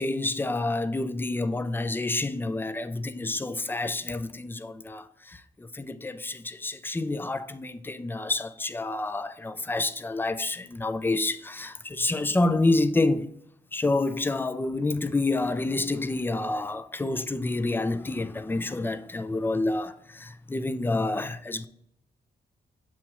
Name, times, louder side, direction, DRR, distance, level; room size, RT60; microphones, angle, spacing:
voice 1, 0.0-13.3 13.7-21.7, left 2 dB, 10° left, 0.4 m, -28 dB
7.0 x 2.9 x 4.6 m
cardioid pair, 70°, 17 cm